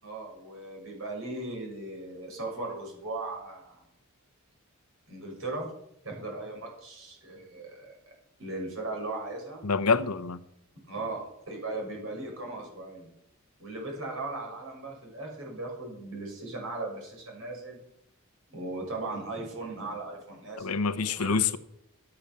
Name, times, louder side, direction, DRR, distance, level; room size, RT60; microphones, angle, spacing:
voice 1, 0.0-3.8 5.1-5.7 6.0-7.9 8.4-9.6 10.9-13.1 13.6-17.8 18.5-21.4, right 2 dB, 65° right, 5.9 m, -38 dB
voice 2, 9.6-10.4 20.6-21.6, left 4 dB, 90° left, 0.8 m, -26 dB
12.5 x 8.8 x 6.8 m
head